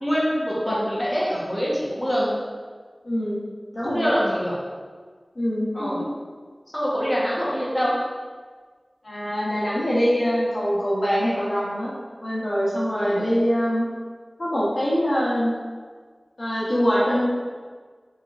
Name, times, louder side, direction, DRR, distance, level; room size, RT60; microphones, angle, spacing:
voice 1, 0.0-2.3 3.8-4.5 5.7-6.0 6.7-7.9 13.0-13.2, equal, 10° left, -7 dB, 1.2 m, -25 dB
voice 2, 3.0-3.4 3.7-4.1 5.3-6.0 9.0-11.9 12.2-13.8 14.4-15.5 16.4-17.3, equal, 65° left, -8 dB, 1.0 m, -23 dB
4.3 x 3.4 x 2.5 m, 1.5 s
wide cardioid pair, 60°, 0 cm